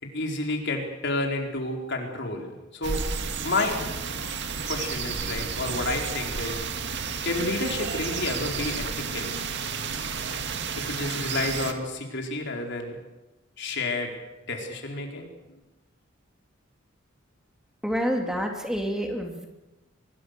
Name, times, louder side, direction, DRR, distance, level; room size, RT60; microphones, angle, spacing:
voice 1, 0.0-3.0 3.4-3.8 4.7-6.7 7.2-9.4 10.7-13.0 13.6-14.2 14.5-15.3, left 2 dB, 60° left, 2 dB, 4.6 m, -30 dB
sound 1, 2.8-11.7, right 5 dB, 60° right, 2.1 m, -32 dB
voice 2, 17.8-19.5, equal, 5° right, 2 dB, 2.6 m, -28 dB
24.5 x 21.5 x 6.8 m, 1.0 s
head